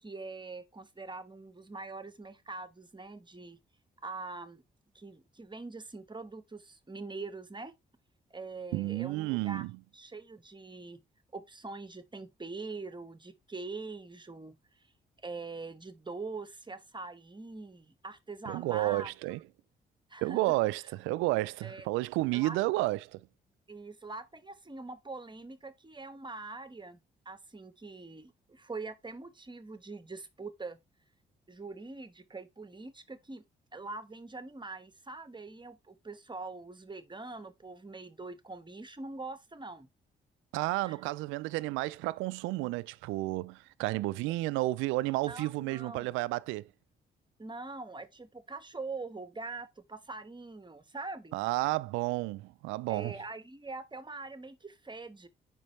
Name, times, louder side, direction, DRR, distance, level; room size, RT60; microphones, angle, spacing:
voice 1, 0.0-3.6 4.0-4.6 4.9-7.8 8.3-9.7 9.9-11.0 11.3-14.9 15.2-19.1 20.1-20.5 21.6-21.9 22.3-22.6 23.7-27.0 27.2-30.8 31.5-33.4 33.7-39.9 40.8-41.0 45.3-46.1 47.4-51.4 52.9-55.3, right 3 dB, 25° right, 1.3 m, -43 dB
voice 2, 8.7-9.7 18.5-19.4 20.2-23.2 40.5-46.6 51.3-53.1, right 19 dB, 90° right, 0.4 m, -31 dB
9.0 x 5.4 x 3.2 m
supercardioid pair, 55°, 20 cm